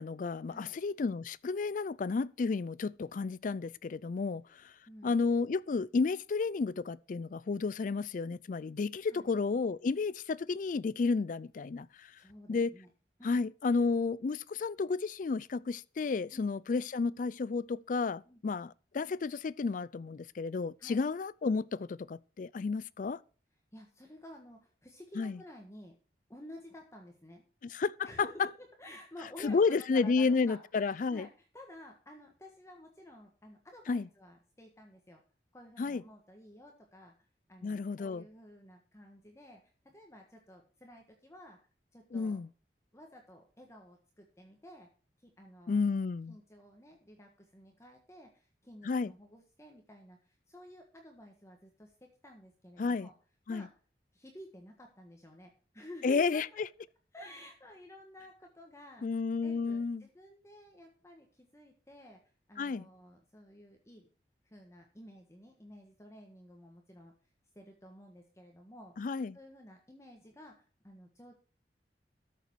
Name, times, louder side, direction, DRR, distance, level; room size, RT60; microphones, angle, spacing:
voice 1, 0.0-4.7 5.0-12.1 12.5-12.7 13.2-23.2 25.2-25.4 27.6-28.3 29.4-31.3 33.9-34.1 35.8-36.0 37.6-38.2 42.1-42.5 45.7-46.4 48.8-49.1 52.8-53.1 53.5-53.7 56.0-56.5 59.0-60.0 62.6-62.9 69.0-69.4, left 4 dB, 45° left, 0.4 m, -32 dB
voice 2, 12.2-12.9 13.2-13.4 16.3-16.5 18.2-18.4 20.8-21.0 23.7-26.0 26.3-27.4 28.0-35.2 35.5-37.1 37.5-41.6 41.9-42.4 42.9-44.9 45.2-45.8 46.3-53.1 53.5-53.7 54.1-56.6 57.1-59.2 59.4-62.2 62.5-64.1 64.4-67.1 67.5-68.9 69.3-71.4, equal, 15° left, 1.4 m, -52 dB
13.0 x 6.8 x 4.6 m
head